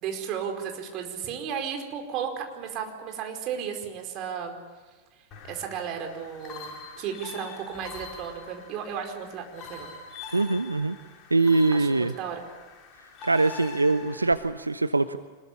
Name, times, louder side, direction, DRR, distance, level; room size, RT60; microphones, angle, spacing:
voice 1, 0.0-4.6 5.5-9.9 11.7-12.4, right 7 dB, 40° right, 3 dB, 4.8 m, -34 dB
sound 1, 5.3-14.3, left 3 dB, 35° left, 5.2 m, -44 dB
voice 2, 10.3-11.0 11.3-12.1 13.2-15.2, right 3 dB, 80° right, 13 dB, 0.7 m, -23 dB
25.5 x 21.0 x 8.6 m, 1.4 s
figure-of-eight pair, 90°, 0 cm